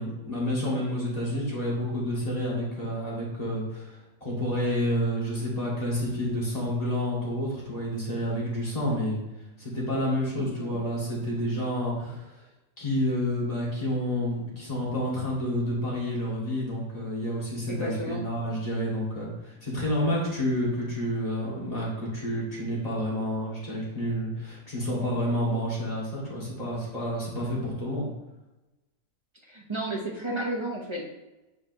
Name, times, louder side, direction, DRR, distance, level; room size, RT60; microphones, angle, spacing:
voice 1, 0.0-9.2 9.6-12.4 12.8-28.1, equal, 20° left, -6 dB, 2.4 m, -29 dB
voice 2, 10.4-10.8 17.7-18.2 29.4-31.1, right 1 dB, 20° right, -2 dB, 0.9 m, -33 dB
7.5 x 5.2 x 3.1 m, 1.0 s
omnidirectional pair, 1.8 m